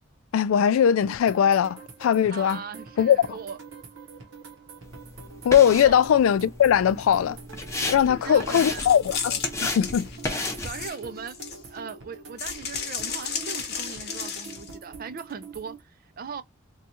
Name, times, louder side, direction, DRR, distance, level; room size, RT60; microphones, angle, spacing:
voice 1, 0.3-2.6 3.0-3.4 5.4-7.4 7.8-10.1, left 8 dB, 75° left, 0.3 m, -20 dB
sound 1, 1.0-15.8, right 4 dB, 65° right, 0.8 m, -45 dB
voice 2, 2.3-3.6 5.8-6.0 8.1-8.9 10.6-11.4 11.7-16.4, right 6 dB, 45° right, 0.4 m, -39 dB
sound 2, 4.8-10.9, left 2 dB, 15° left, 0.6 m, -34 dB
sound 3, 8.7-11.8 12.4-14.7, left 6 dB, 50° left, 0.8 m, -33 dB
2.7 x 2.3 x 4.1 m
head